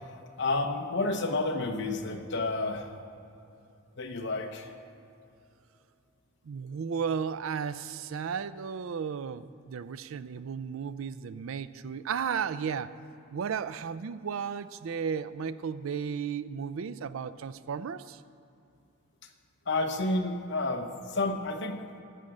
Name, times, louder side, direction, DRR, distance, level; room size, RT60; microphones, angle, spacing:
voice 1, 0.4-2.9 4.0-4.7 19.7-21.8, left 2 dB, 55° left, 5 dB, 0.9 m, -30 dB
voice 2, 6.4-13.0 13.3-18.2, right 6 dB, 70° right, 15 dB, 0.4 m, -34 dB
12.5 x 6.5 x 7.7 m, 2.7 s
head